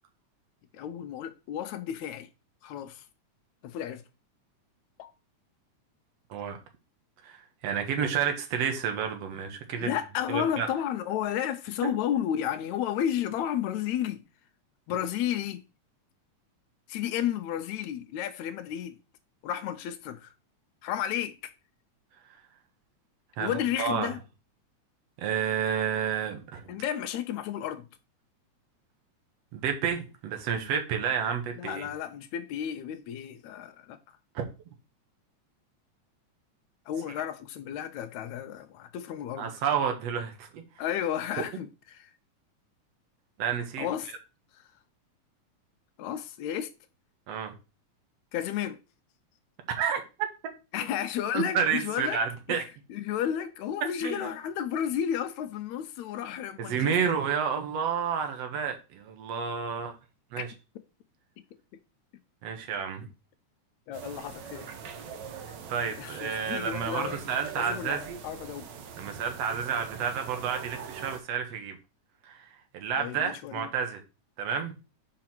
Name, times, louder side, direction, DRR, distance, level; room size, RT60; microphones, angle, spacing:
voice 1, 0.7-2.3 2.6-3.0 3.6-4.0 5.0-5.1 9.7-14.2 14.9-15.6 16.9-19.0 19.4-20.3 20.8-21.5 23.4-24.2 26.7-27.9 31.6-34.0 36.9-39.5 40.8-42.1 43.8-44.1 46.0-46.7 48.3-48.8 50.7-52.2 52.5-57.2 60.4-60.5 63.9-64.7 65.5-65.6 65.9-67.2 67.6-68.7 73.0-73.7, left 10 dB, 75° left, 2.0 m, -32 dB
voice 2, 7.2-10.0 10.3-10.7 11.8-11.9 22.3-22.4 23.4-24.1 25.2-26.7 29.5-31.9 34.3-34.5 39.4-40.6 43.4-43.9 47.3-47.5 49.8-50.0 50.4-50.5 50.8-50.9 51.3-52.6 54.0-54.3 56.6-59.9 60.3-60.5 62.4-63.1 65.7-68.2 69.0-71.8 72.2-74.0 74.4-74.8, right 7 dB, 60° right, 2.2 m, -30 dB
sound 1, 63.9-71.2, right 7 dB, 90° right, 0.9 m, -43 dB
5.7 x 4.9 x 5.9 m
omnidirectional pair, 3.4 m